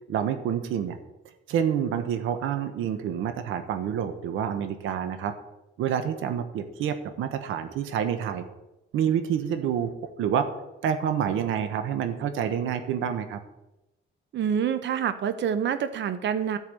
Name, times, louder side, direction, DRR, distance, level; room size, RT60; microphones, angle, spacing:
voice 1, 0.1-1.0 1.5-5.3 5.8-8.5 8.9-9.9 10.2-10.5 10.8-13.4, right 8 dB, 85° right, 9 dB, 1.1 m, -28 dB
voice 2, 14.3-16.6, right 8 dB, 65° right, 11 dB, 0.9 m, -27 dB
11.0 x 4.8 x 8.2 m, 0.93 s
cardioid pair, 90°, 20 cm